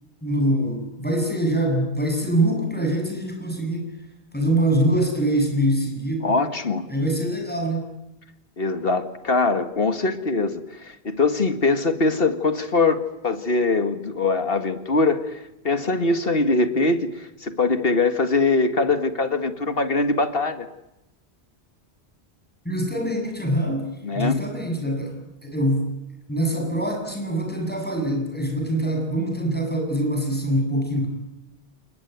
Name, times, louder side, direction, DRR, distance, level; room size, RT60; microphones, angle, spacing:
voice 1, 0.2-3.9 4.3-6.4 6.9-7.9 22.6-23.9 24.1-25.9 26.3-31.1, right 1 dB, 10° left, 7.9 m, -24 dB
voice 2, 6.2-6.9 8.6-20.7 24.0-24.4, left 3 dB, 60° left, 2.1 m, -22 dB
29.5 x 19.5 x 9.6 m
omnidirectional pair, 1.1 m